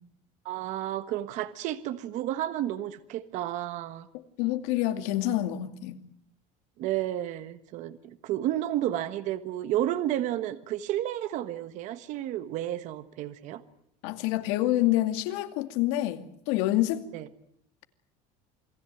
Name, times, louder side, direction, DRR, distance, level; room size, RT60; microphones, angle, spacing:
voice 1, 0.4-4.1 6.8-13.6 17.1-17.3, right 13 dB, 50° right, 1.4 m, -31 dB
voice 2, 4.4-6.0 14.0-17.0, left 15 dB, 75° left, 2.4 m, -27 dB
28.5 x 19.5 x 9.1 m
cardioid pair, 160°, 16 cm